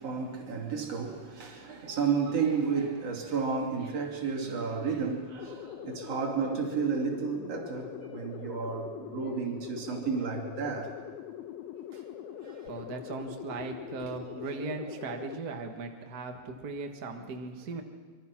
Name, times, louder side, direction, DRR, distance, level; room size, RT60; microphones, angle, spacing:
voice 1, 0.0-11.0 11.7-12.0 12.4-12.7, right 5 dB, 40° right, 3.4 m, -32 dB
sound 1, 5.4-15.4, left 10 dB, 75° left, 2.8 m, -43 dB
voice 2, 12.5-17.8, right 3 dB, 85° right, 0.8 m, -38 dB
24.5 x 24.0 x 6.0 m
omnidirectional pair, 4.6 m